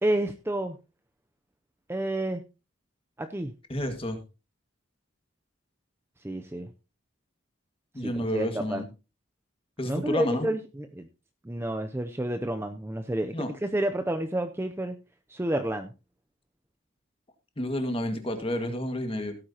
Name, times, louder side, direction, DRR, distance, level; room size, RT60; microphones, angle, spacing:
voice 1, 0.0-0.8 1.9-2.4 3.2-3.5 6.2-6.7 8.0-8.8 9.9-11.1 11.4-15.0 15.3-15.9, right 1 dB, 10° right, 7 dB, 0.5 m, -30 dB
voice 2, 3.7-4.2 7.9-8.9 9.8-10.5 13.3-13.5 17.6-19.4, equal, 25° left, 6 dB, 1.8 m, -30 dB
16.5 x 8.9 x 2.9 m, 0.29 s
head